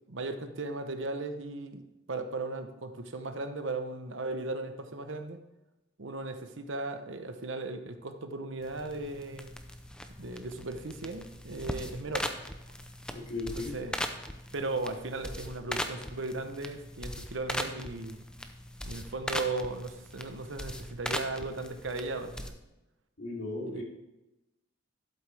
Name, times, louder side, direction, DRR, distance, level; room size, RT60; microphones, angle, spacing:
voice 1, 0.1-1.8 2.1-5.4 6.0-9.5 10.2-12.3 13.6-14.0 14.5-18.2 18.8-22.5 23.7-23.8, right 2 dB, 65° right, 8 dB, 0.9 m, -37 dB
sound 1, 8.6-22.5, left 1 dB, 5° left, 0.6 m, -40 dB
voice 2, 13.1-13.7 23.2-23.8, left 2 dB, 65° left, -3 dB, 3.2 m, -36 dB
12.0 x 8.1 x 3.4 m, 0.97 s
head